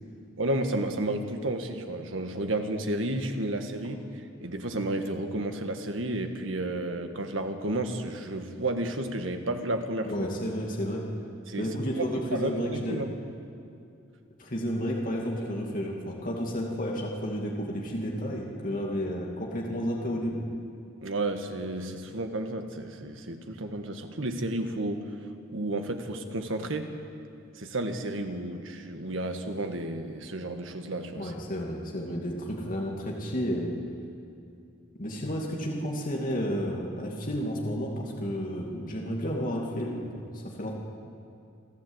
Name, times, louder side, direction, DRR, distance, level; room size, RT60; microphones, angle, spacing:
voice 1, 0.4-10.1 11.5-13.1 21.0-25.1 25.5-26.9 27.6-31.3, right 1 dB, 85° right, 6 dB, 1.6 m, -32 dB
voice 2, 10.0-11.0 11.6-13.0 14.4-20.5 31.2-33.7 35.0-40.7, equal, 45° left, -2 dB, 2.4 m, -31 dB
28.0 x 12.0 x 8.0 m, 2.5 s
head